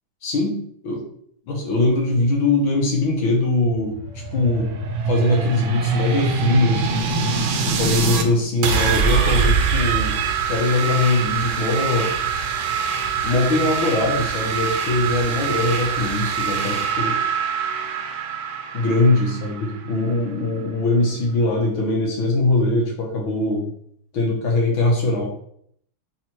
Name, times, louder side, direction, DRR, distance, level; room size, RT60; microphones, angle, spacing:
voice 1, 0.2-1.0 1.5-4.7 5.1-12.1 13.2-17.2 18.7-23.7 24.1-25.3, left 2 dB, 80° left, 0 dB, 2.3 m, -22 dB
sound 1, 3.6-8.3 8.6-20.2, right 5 dB, 80° right, 1.6 m, -24 dB
4.8 x 4.8 x 4.5 m, 0.66 s
omnidirectional pair, 2.2 m